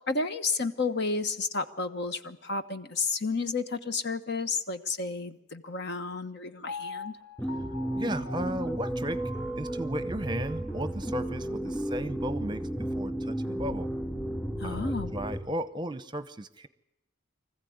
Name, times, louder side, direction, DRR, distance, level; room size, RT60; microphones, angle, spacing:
voice 1, 0.1-7.2 14.6-15.1, left 4 dB, 50° left, 10 dB, 1.3 m, -31 dB
Piano, 6.7-10.8 11.2-11.3, left 3 dB, 90° left, 4.8 m, -44 dB
sound 1, 7.4-15.4, right 1 dB, 10° left, 2.8 m, -33 dB
voice 2, 7.9-9.2 9.6-12.6 12.9-13.9 14.6-16.7, right 1 dB, 20° right, 14 dB, 0.8 m, -35 dB
24.5 x 15.0 x 9.5 m, 0.87 s
head